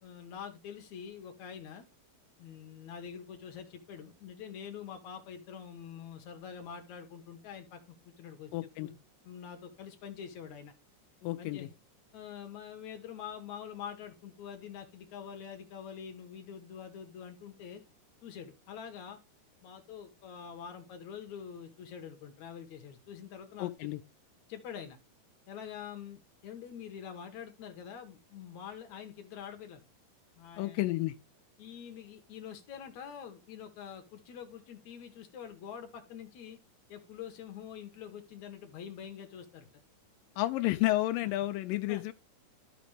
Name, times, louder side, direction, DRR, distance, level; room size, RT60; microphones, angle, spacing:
voice 1, 0.0-1.9 2.4-9.0 9.2-10.7 11.4-11.7 12.1-17.8 18.2-19.2 19.6-23.9 24.5-25.0 25.5-29.8 30.4-30.9 31.6-36.6 36.9-39.7 41.9-42.0, left 8 dB, 65° left, 2.0 m, -45 dB
voice 2, 8.5-8.9 11.2-11.7 23.6-24.0 30.6-31.2 40.4-42.1, left 17 dB, 90° left, 1.9 m, -31 dB
13.0 x 5.1 x 3.3 m
omnidirectional pair, 4.5 m